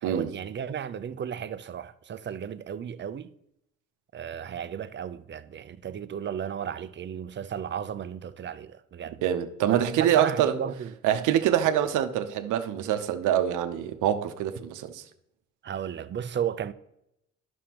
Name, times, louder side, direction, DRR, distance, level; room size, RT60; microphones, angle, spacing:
voice 1, 0.0-3.3 4.1-9.3 9.6-10.9 15.6-16.7, right 8 dB, 40° right, 0.5 m, -34 dB
voice 2, 9.2-10.6 11.0-15.0, right 10 dB, 90° right, 0.7 m, -25 dB
11.0 x 6.3 x 2.9 m
cardioid pair, 90°, 30 cm